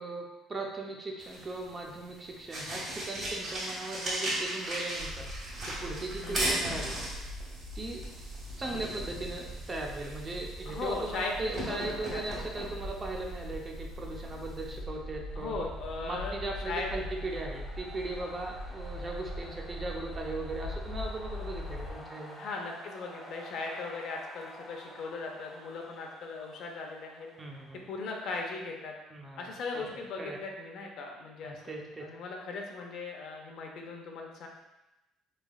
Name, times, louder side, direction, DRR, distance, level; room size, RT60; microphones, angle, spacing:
voice 1, 0.0-5.3 5.7-7.0 7.8-8.1 8.6-15.7 16.0-22.4 27.4-27.9 29.1-29.8 30.2-30.4 31.4-32.1, right 2 dB, 25° right, 1 dB, 0.5 m, -38 dB
sound 1, 1.2-14.8, right 1 dB, 45° right, 1.4 m, -38 dB
sound 2, 4.9-21.9, equal, 75° right, 0.6 m, -42 dB
voice 2, 6.2-6.6 10.7-12.4 15.4-16.3 16.6-16.9 22.4-27.3 27.9-28.9 29.4-31.6 32.0-34.5, left 3 dB, 65° left, 1 dB, 0.6 m, -38 dB
sound 3, 14.9-28.6, equal, 10° left, 0.8 m, -51 dB
3.6 x 3.2 x 2.3 m, 0.97 s
cardioid pair, 115°, 0 cm